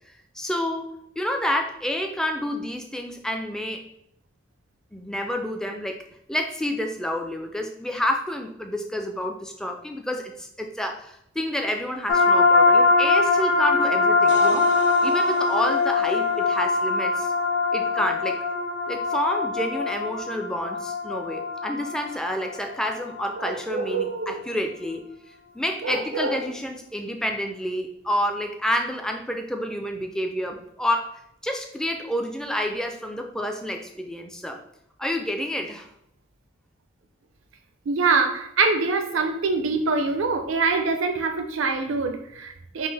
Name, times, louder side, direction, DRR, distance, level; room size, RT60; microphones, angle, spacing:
voice 1, 0.3-3.8 4.9-6.0 6.3-17.3 17.7-18.4 18.9-25.1 25.5-34.6 35.0-35.9, equal, 5° left, 4 dB, 0.3 m, -29 dB
sound 1, 12.1-23.5, left 3 dB, 65° left, 0.9 m, -22 dB
voice 2, 23.4-24.4 25.8-26.4 37.9-42.9, right 4 dB, 85° right, 6 dB, 0.5 m, -25 dB
5.3 x 2.4 x 3.3 m, 0.78 s
head